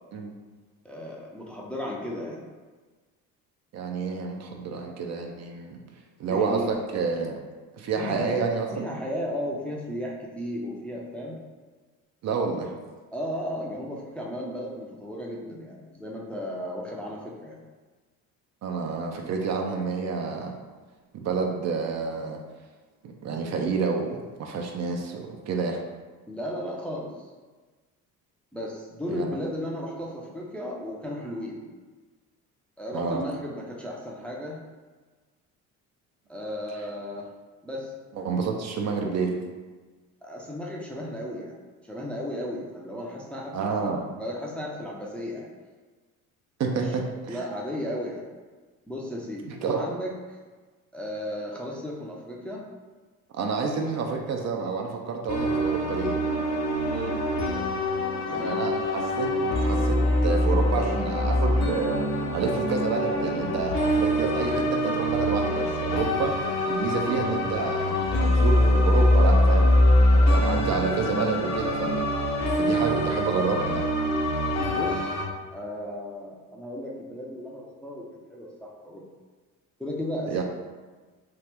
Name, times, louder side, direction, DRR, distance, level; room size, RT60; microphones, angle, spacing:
voice 1, 0.8-2.4 6.3-6.7 8.0-8.3 8.7-11.4 13.1-17.6 26.3-27.1 28.5-31.6 32.8-34.6 36.3-37.3 37.6-37.9 40.2-41.6 41.9-43.6 43.8-43.9 44.2-45.5 46.7-46.8 47.3-48.2 48.9-50.1 50.9-52.6 56.9-57.2 58.3-58.6 74.7-75.2 75.5-79.0 79.8-80.4, equal, 5° left, -3 dB, 0.4 m, -34 dB
voice 2, 3.7-5.8 6.2-7.4 7.7-8.8 12.2-12.7 18.6-20.5 21.1-22.4 23.0-25.8 29.1-29.4 32.9-33.2 38.1-39.4 43.5-44.0 46.6-47.4 49.5-49.8 53.3-56.2 58.3-59.3 59.6-66.3 66.7-69.8 70.1-72.1 72.5-73.9 80.3-80.4, right 5 dB, 50° right, 2 dB, 0.5 m, -29 dB
sound 1, 55.3-75.3, left 1 dB, 50° left, 0.6 m, -24 dB
3.0 x 2.4 x 3.3 m, 1.3 s
cardioid pair, 100°, 35 cm